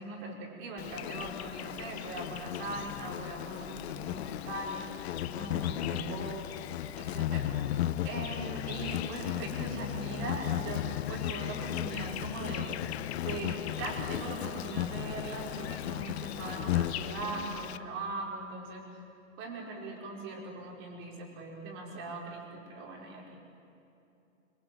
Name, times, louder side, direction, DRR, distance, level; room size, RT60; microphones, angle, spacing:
voice 1, 0.0-4.9 5.3-6.5 7.0-7.5 8.0-12.9 13.2-18.8 19.4-23.4, right 2 dB, 30° right, 0 dB, 5.2 m, -40 dB
Insect, 0.8-17.8, left 12 dB, 50° left, 1.0 m, -35 dB
25.0 x 24.0 x 8.1 m, 2.8 s
hypercardioid pair, 150°, 41 cm